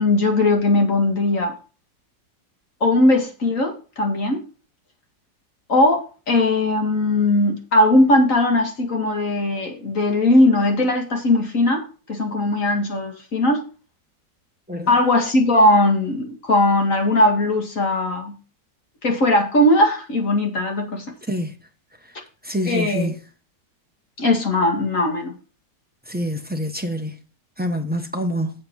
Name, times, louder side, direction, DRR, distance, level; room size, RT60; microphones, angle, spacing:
voice 1, 0.0-1.6 2.8-4.4 5.7-11.8 12.1-13.6 14.9-18.4 19.0-21.1 22.7-23.1 24.2-25.4, left 1 dB, 45° left, 2.3 m, -19 dB
voice 2, 22.4-23.1 26.1-27.2 27.6-28.5, equal, 15° right, 0.3 m, -26 dB
7.7 x 7.4 x 5.3 m
omnidirectional pair, 1.9 m